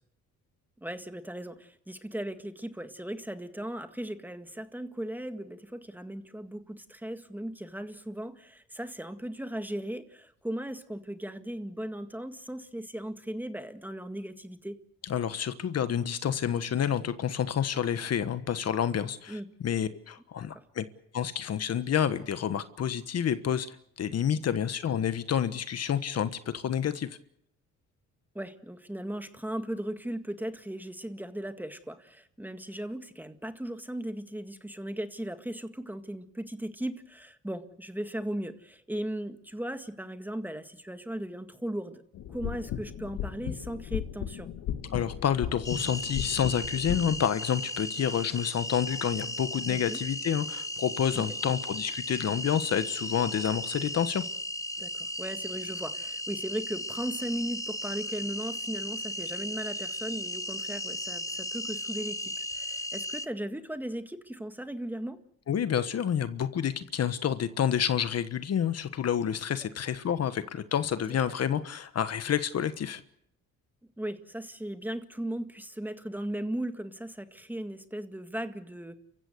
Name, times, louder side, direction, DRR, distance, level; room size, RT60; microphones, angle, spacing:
voice 1, 0.8-14.8 19.3-19.5 20.5-20.6 24.3-24.4 28.4-42.0 42.3-44.5 49.7-50.0 51.1-51.2 54.8-65.2 74.0-79.0, right 1 dB, 5° right, 8 dB, 1.9 m, -37 dB
voice 2, 15.0-19.4 19.6-20.8 21.1-27.1 44.9-54.2 65.5-73.0, left 9 dB, 55° left, 12 dB, 1.4 m, -29 dB
sound 1, 42.1-47.2, left 10 dB, 85° left, 2.2 m, -36 dB
sound 2, 45.6-63.3, left 1 dB, 10° left, 0.9 m, -36 dB
29.5 x 15.5 x 8.1 m, 0.72 s
cardioid pair, 90°, 30 cm